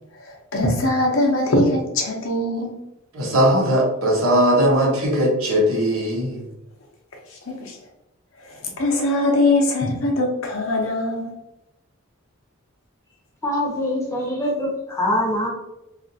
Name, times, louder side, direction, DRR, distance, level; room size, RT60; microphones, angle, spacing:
voice 1, 0.3-2.8 7.5-7.8 8.5-11.4, left 1 dB, 65° left, 0 dB, 0.7 m, -21 dB
voice 2, 3.1-6.4, equal, 70° right, -2 dB, 0.9 m, -19 dB
voice 3, 13.4-15.5, left 1 dB, 15° left, -3 dB, 0.7 m, -23 dB
2.8 x 2.4 x 2.6 m, 0.90 s
head